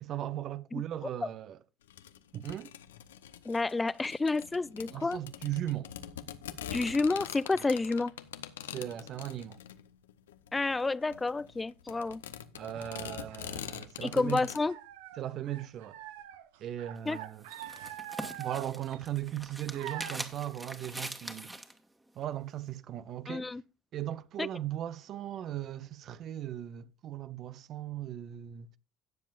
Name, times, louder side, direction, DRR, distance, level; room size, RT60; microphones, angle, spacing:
voice 1, 0.0-1.6 2.3-2.7 4.9-5.9 8.7-9.6 12.5-14.4 15.2-16.0 16.6-17.4 18.4-21.5 22.2-23.5 23.9-28.8, right 12 dB, 50° right, 0.6 m, -38 dB
sound 1, 1.9-14.6, left 10 dB, 80° left, 0.7 m, -44 dB
voice 2, 3.4-5.2 6.7-8.1 10.5-12.2 14.0-14.8 17.1-17.2 23.3-23.6 24.4-24.5, left 3 dB, 15° left, 0.5 m, -30 dB
sound 2, 12.7-14.3 14.6-20.3, right 11 dB, 70° right, 0.9 m, -45 dB
sound 3, 17.0-21.8, right 1 dB, 10° right, 1.7 m, -43 dB
17.0 x 7.3 x 2.4 m
hypercardioid pair, 70°, 0 cm